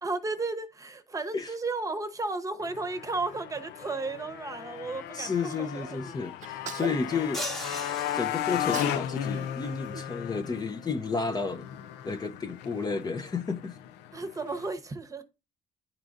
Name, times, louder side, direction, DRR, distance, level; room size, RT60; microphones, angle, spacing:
voice 1, 0.0-6.1 6.5-6.6 7.1-7.3 14.1-15.2, right 3 dB, 20° right, 0.9 m, -34 dB
Motorcycle, 2.6-14.7, left 10 dB, 90° left, 0.5 m, -36 dB
voice 2, 5.1-7.5 8.1-11.7 12.0-13.8, left 4 dB, 25° left, 0.5 m, -32 dB
Sneeze, 6.4-8.0 8.5-9.1 9.3-10.8, right 9 dB, 45° right, 0.6 m, -42 dB
sound 1, 7.3-9.1, left 1 dB, ahead, 1.0 m, -38 dB
10.0 x 3.8 x 2.5 m
cardioid pair, 110°, 17 cm